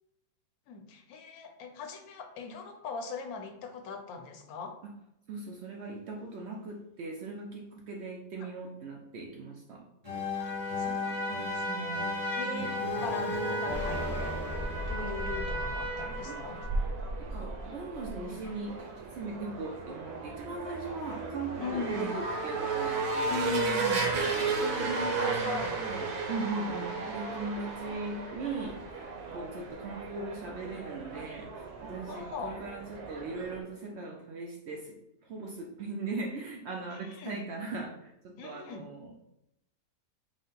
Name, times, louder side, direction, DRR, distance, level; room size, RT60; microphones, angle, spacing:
voice 1, 0.7-4.8 8.4-8.5 10.3-14.3 14.9-16.7 21.6-22.2 23.3-25.7 26.9-27.4 32.1-32.6 36.9-37.5 38.4-38.9, left 4 dB, 80° left, 5 dB, 1.1 m, -40 dB
voice 2, 5.3-9.8 12.4-12.7 16.2-16.4 17.3-23.6 24.4-39.2, right 3 dB, 65° right, 0 dB, 0.7 m, -39 dB
sound 1, 10.0-15.8, left 3 dB, 15° right, 1.1 m, -36 dB
Trumpet, 10.4-16.9, right 1 dB, 40° left, 0.7 m, -37 dB
sound 2, 13.7-33.6, right 3 dB, 85° right, 1.3 m, -35 dB
5.1 x 2.1 x 3.8 m, 0.84 s
omnidirectional pair, 1.6 m